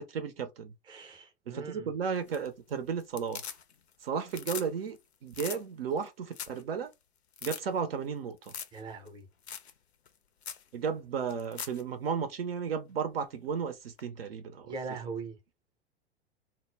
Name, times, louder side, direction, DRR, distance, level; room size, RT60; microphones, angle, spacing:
voice 1, 0.0-0.7 1.5-3.4 4.0-6.9 7.4-8.5 10.7-14.7, right 6 dB, 60° right, 0.5 m, -34 dB
voice 2, 0.9-1.9 8.7-9.3 14.6-15.4, right 4 dB, 15° right, 0.5 m, -40 dB
sound 1, 2.2-2.7 3.0-3.9 4.2-4.7 5.0-5.1 5.3-5.6 6.0-6.1 6.3-6.6 6.9-7.0 7.3-7.6 8.4-8.8 9.1-9.2 9.5-9.7 10.1-10.2 10.4-10.6 11.3-11.8 14.0-14.1, left 7 dB, 75° left, 0.5 m, -40 dB
2.1 x 2.0 x 3.2 m
figure-of-eight pair, 100°, 33 cm